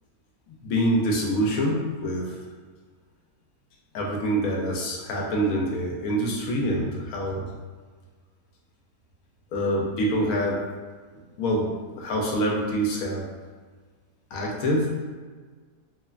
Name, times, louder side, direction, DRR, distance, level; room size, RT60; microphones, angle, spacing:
voice 1, 0.6-2.4 3.9-7.5 9.5-10.6 11.4-13.2 14.3-15.0, equal, 70° left, -2 dB, 0.9 m, -25 dB
3.1 x 2.1 x 2.3 m, 1.5 s
omnidirectional pair, 1.7 m